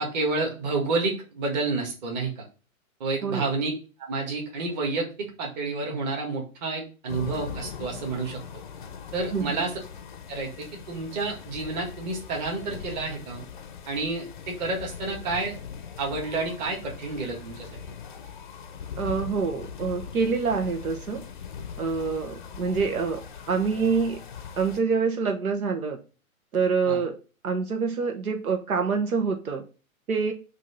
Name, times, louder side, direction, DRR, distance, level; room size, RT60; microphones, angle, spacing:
voice 1, 0.0-2.3 3.0-3.7 4.1-8.4 9.1-9.8 10.3-13.4 13.9-15.5 16.0-17.7 26.8-27.1, right 3 dB, 30° right, 0 dB, 1.8 m, -29 dB
sound 1, 7.1-24.8, left 7 dB, 35° left, 0.6 m, -40 dB
voice 2, 9.3-9.6 19.0-21.2 21.8-23.2 23.5-24.2 24.6-26.0 26.5-27.2 27.4-29.6 30.1-30.3, right 5 dB, 80° right, 4 dB, 1.3 m, -26 dB
6.0 x 2.9 x 5.6 m, 0.33 s
hypercardioid pair, 160°, 43 cm